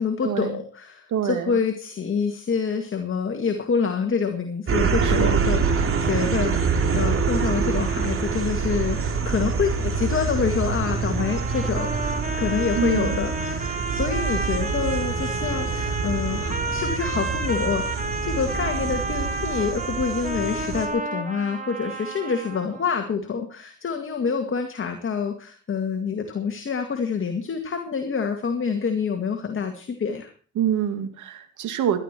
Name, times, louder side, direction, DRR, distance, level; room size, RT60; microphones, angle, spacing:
voice 1, 0.0-30.3, left 6 dB, 45° left, 5 dB, 2.2 m, -27 dB
voice 2, 1.1-1.6 5.0-5.5 12.8-13.2 30.6-32.0, right 9 dB, 75° right, 8 dB, 2.4 m, -26 dB
sound 1, 4.7-20.9, right 5 dB, 45° right, 3.0 m, -26 dB
sound 2, 11.2-22.8, right 2 dB, 25° right, 2.4 m, -31 dB
17.0 x 12.0 x 4.6 m, 0.42 s
cardioid pair, 90°, 30 cm